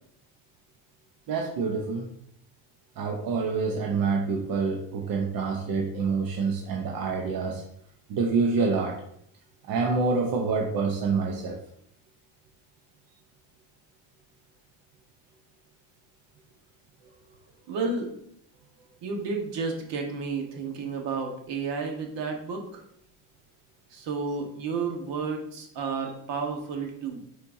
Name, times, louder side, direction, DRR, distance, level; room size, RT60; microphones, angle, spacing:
voice 1, 1.3-2.1 3.0-7.6 8.1-9.0 9.7-11.6, right 4 dB, 50° right, 1 dB, 0.8 m, -27 dB
voice 2, 17.7-18.1 19.0-22.8 23.9-27.2, right 4 dB, 70° right, 2 dB, 1.5 m, -31 dB
8.5 x 4.4 x 2.7 m, 0.69 s
cardioid pair, 165°, 45 cm